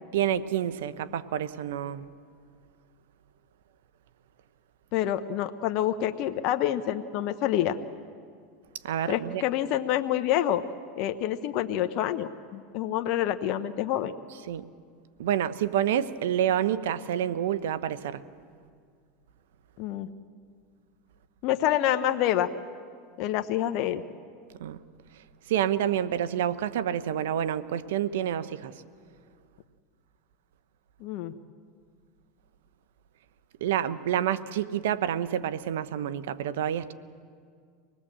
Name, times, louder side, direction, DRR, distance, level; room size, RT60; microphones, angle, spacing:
voice 1, 0.1-2.1 8.8-9.4 14.5-14.6 15.2-18.2 24.6-24.8 25.5-28.7 33.6-36.9, right 10 dB, 80° right, 0.8 m, -28 dB
voice 2, 4.9-7.8 9.1-10.6 11.0-14.1 19.8-20.1 21.4-22.5 23.2-24.0 31.0-31.3, left 12 dB, 60° left, 0.9 m, -27 dB
25.0 x 19.5 x 7.6 m
hypercardioid pair, 100°, 0 cm